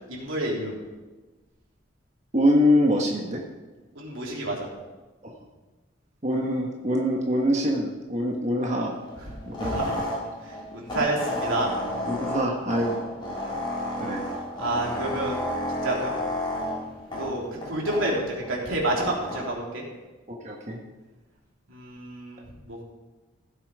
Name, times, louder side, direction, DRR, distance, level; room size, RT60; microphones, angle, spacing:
voice 1, 0.1-0.8 4.0-4.7 9.6-9.9 10.4-11.7 14.6-15.4 15.8-16.2 17.2-19.8 21.7-22.8, right 1 dB, 90° right, -2 dB, 3.5 m, -29 dB
voice 2, 2.3-3.4 5.2-5.3 6.2-8.9 9.5-10.0 10.9-11.1 12.1-13.0 14.0-14.2 20.3-20.8, equal, 35° right, -1 dB, 1.5 m, -24 dB
sound 1, 8.8-19.4, left 1 dB, 25° left, 4.0 m, -32 dB
15.5 x 8.6 x 5.0 m, 1.2 s
head